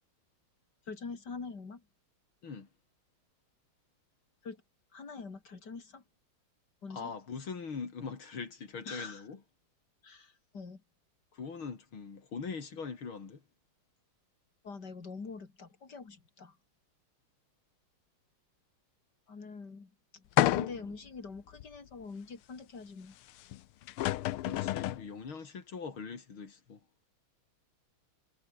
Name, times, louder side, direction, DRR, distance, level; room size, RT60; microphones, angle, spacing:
voice 1, 0.9-1.8 4.4-4.6 4.9-6.0 6.8-7.1 8.9-9.2 10.0-10.8 14.6-16.6 19.3-20.3 20.5-23.2, left 4 dB, 50° left, 3.6 m, -44 dB
voice 2, 6.9-9.4 11.3-13.4 24.4-26.8, left 5 dB, 75° left, 4.0 m, -42 dB
sound 1, 20.4-21.0 21.6-21.7 23.5-23.6 23.9-25.1, left 14 dB, 90° left, 1.7 m, -29 dB
omnidirectional pair, 2.3 m